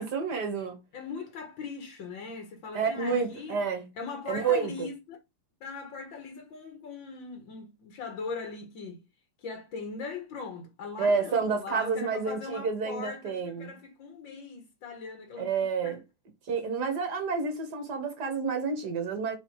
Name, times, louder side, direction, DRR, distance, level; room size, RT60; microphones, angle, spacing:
voice 1, 0.0-0.8 2.7-3.9 4.3-4.9 11.0-13.8 15.4-16.0 16.5-19.4, right 5 dB, 60° right, 2.2 m, -29 dB
voice 2, 0.9-3.6 4.0-5.2 5.6-9.0 9.4-16.0, left 4 dB, 80° left, 2.1 m, -40 dB
6.7 x 4.0 x 4.7 m
omnidirectional pair, 2.1 m